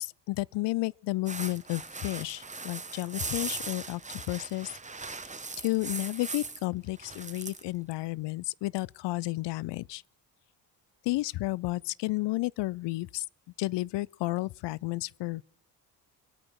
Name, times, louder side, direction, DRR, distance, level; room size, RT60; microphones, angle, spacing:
voice 1, 0.0-4.0 4.3-4.7 5.6-10.0 11.1-13.2 13.6-15.4, left 19 dB, 70° left, 0.5 m, -32 dB
sound 1, 1.3-6.7 7.0-7.6, right 4 dB, 15° right, 1.0 m, -39 dB
25.0 x 8.8 x 4.7 m
supercardioid pair, 70°, 44 cm